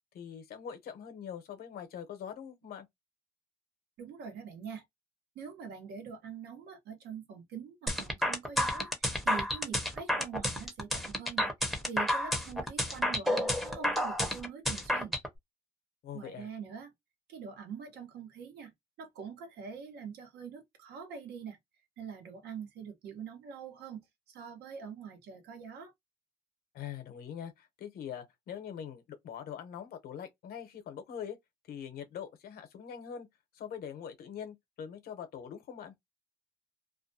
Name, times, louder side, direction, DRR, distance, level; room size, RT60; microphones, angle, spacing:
voice 1, 0.1-2.9 16.0-16.5 26.7-31.4 31.7-33.3 33.5-35.9, left 8 dB, 65° left, 0.8 m, -43 dB
voice 2, 4.0-4.8 5.3-15.1 16.1-16.9 17.3-18.7 19.0-21.6 22.0-24.0 24.3-25.9, right 6 dB, 75° right, 1.0 m, -44 dB
sound 1, 7.9-15.3, left 1 dB, ahead, 0.7 m, -30 dB
2.4 x 2.2 x 2.7 m
cardioid pair, 110°, 17 cm